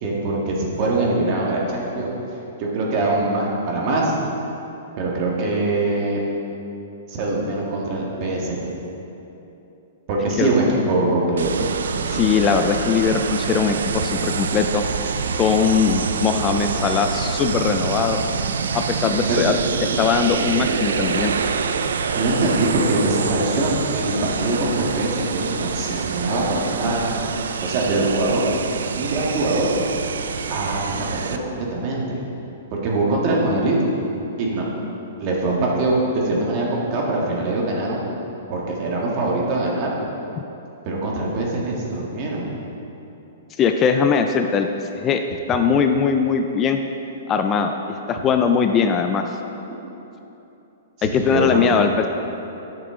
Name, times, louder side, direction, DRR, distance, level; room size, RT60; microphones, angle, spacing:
voice 1, 0.0-2.1 2.6-4.1 5.0-6.2 7.1-8.7 10.1-11.7 19.3-19.4 22.2-28.4 29.0-29.7 30.5-32.2 32.7-33.8 34.4-34.6 35.2-38.0 38.5-40.0 40.8-42.5 51.0-51.8, right 2 dB, 40° right, -3 dB, 1.7 m, -23 dB
sound 1, 11.4-31.4, right 6 dB, 85° right, 0.4 m, -26 dB
voice 2, 12.1-14.8 15.4-18.2 18.7-19.5 19.8-21.3 43.6-44.7 44.9-45.2 45.5-46.8 47.3-49.2 51.0-52.1, left 6 dB, 25° left, 6 dB, 0.4 m, -20 dB
10.5 x 6.0 x 3.7 m, 3.0 s
hypercardioid pair, 140°, 0 cm